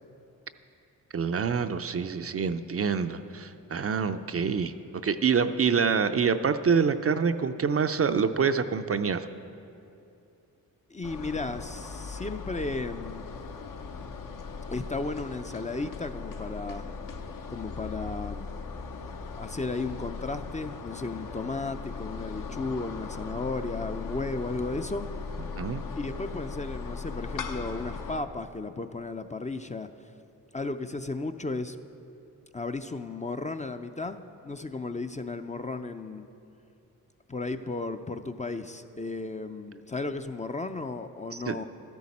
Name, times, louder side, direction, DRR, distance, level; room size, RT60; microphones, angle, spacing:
voice 1, 1.1-4.7 5.0-9.3 25.5-25.8 41.5-41.6, right 6 dB, 40° right, 9 dB, 0.5 m, -26 dB
voice 2, 10.9-13.3 14.7-16.9 17.5-18.5 19.3-25.1 26.0-29.9 30.5-31.8 32.5-36.3 37.3-41.6, left 3 dB, 20° left, 8 dB, 0.5 m, -34 dB
sound 1, 11.0-28.2, left 4 dB, 60° left, 1.0 m, -38 dB
13.0 x 11.0 x 4.2 m, 2.7 s
supercardioid pair, 50°, 37 cm